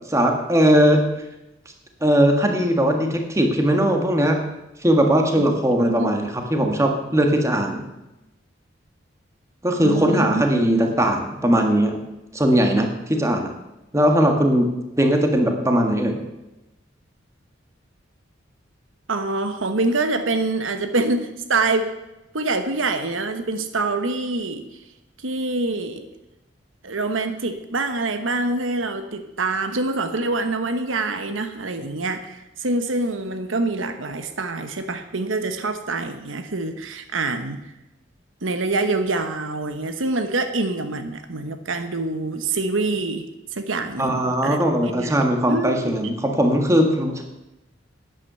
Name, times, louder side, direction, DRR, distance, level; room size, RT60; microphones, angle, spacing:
voice 1, 0.1-1.0 2.0-4.4 4.8-7.8 9.6-12.0 12.3-13.5 13.9-14.7 15.0-16.2 44.0-47.2, equal, 15° right, 3 dB, 1.6 m, -19 dB
voice 2, 5.8-6.1 9.8-10.8 19.1-21.9 22.3-24.7 25.2-26.1 26.8-37.6 38.4-46.0, right 2 dB, 90° right, 8 dB, 1.2 m, -25 dB
12.0 x 9.2 x 6.8 m, 0.97 s
head